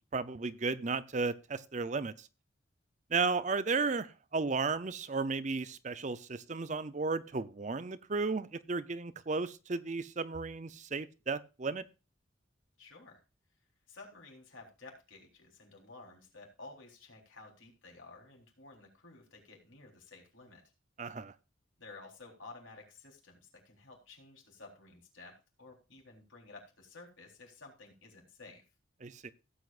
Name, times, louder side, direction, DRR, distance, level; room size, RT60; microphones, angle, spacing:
voice 1, 0.1-2.3 3.1-11.8 21.0-21.3 29.0-29.3, right 4 dB, 40° right, 0.6 m, -34 dB
voice 2, 12.8-13.2 13.9-20.6 21.8-28.6, left 3 dB, 85° left, 3.8 m, -53 dB
16.5 x 8.2 x 2.5 m
head